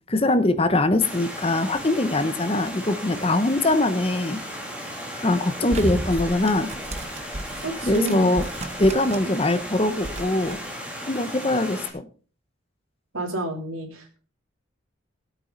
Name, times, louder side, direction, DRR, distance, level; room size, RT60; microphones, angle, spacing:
voice 1, 0.1-4.4 5.1-6.7 7.8-8.4 8.8-10.6 11.1-12.0, left 2 dB, 30° left, 10 dB, 0.9 m, -22 dB
Stream, 1.0-11.9, equal, 5° right, 2.8 m, -36 dB
sound 1, 5.7-9.4 9.7-10.6, right 1 dB, 35° right, 1.0 m, -33 dB
voice 2, 7.6-8.3 13.1-14.2, right 1 dB, 90° right, 2 dB, 3.3 m, -29 dB
18.0 x 8.6 x 4.0 m, 0.39 s
head